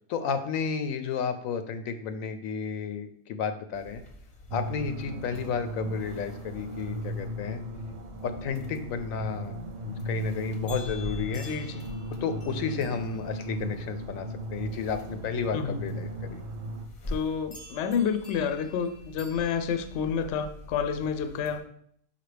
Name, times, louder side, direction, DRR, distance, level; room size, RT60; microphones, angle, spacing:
voice 1, 0.1-4.0 4.5-7.6 8.2-11.5 12.2-16.4, left 6 dB, 90° left, 9 dB, 1.0 m, -32 dB
sound 1, 3.7-21.6, left 1 dB, 35° left, 0.8 m, -46 dB
sound 2, 4.5-16.9, right 1 dB, 75° right, 1.0 m, -37 dB
voice 2, 11.3-11.8 15.5-15.8 17.1-21.6, left 7 dB, 65° left, 9 dB, 0.8 m, -29 dB
5.8 x 5.5 x 3.3 m, 0.68 s
omnidirectional pair, 1.4 m